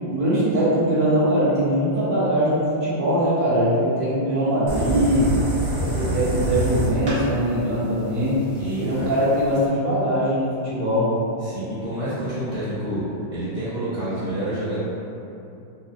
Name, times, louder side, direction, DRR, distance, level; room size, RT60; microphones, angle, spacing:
voice 1, 0.1-5.3 5.8-8.4 8.8-11.1, equal, 70° right, -13 dB, 2.3 m, -21 dB
sound 1, 4.7-9.7, right 1 dB, 50° right, 0.7 m, -27 dB
voice 2, 8.6-9.1 11.4-14.8, right 1 dB, 35° left, -13 dB, 0.7 m, -28 dB
6.1 x 2.3 x 2.2 m, 2.8 s
omnidirectional pair, 2.1 m